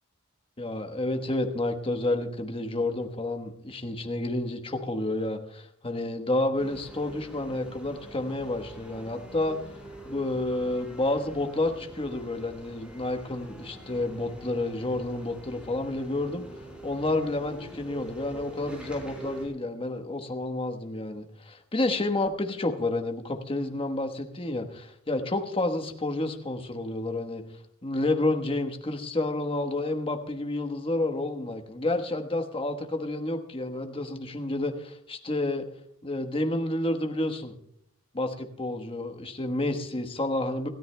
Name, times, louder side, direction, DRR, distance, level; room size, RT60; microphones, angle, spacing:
voice 1, 0.6-9.6 10.1-16.4 16.8-27.4 27.8-35.6 36.0-37.5 38.1-40.7, left 2 dB, 25° left, 6 dB, 1.2 m, -30 dB
sound 1, 6.6-19.5, right 1 dB, 5° right, 3.8 m, -45 dB
27.0 x 13.0 x 2.2 m, 0.69 s
head